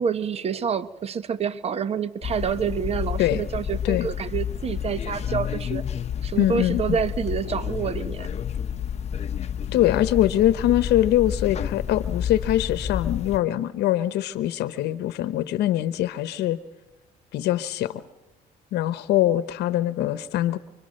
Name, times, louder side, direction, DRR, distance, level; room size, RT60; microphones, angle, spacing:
voice 1, 0.0-5.8 6.2-8.3, right 7 dB, 35° right, 14 dB, 1.0 m, -28 dB
sound 1, 2.2-13.4, left 8 dB, 40° left, 0.8 m, -30 dB
voice 2, 6.4-6.8 9.7-16.6 17.3-18.0 18.7-20.6, left 13 dB, 80° left, 13 dB, 1.0 m, -23 dB
29.5 x 23.0 x 6.5 m, 1.0 s
cardioid pair, 110°, 17 cm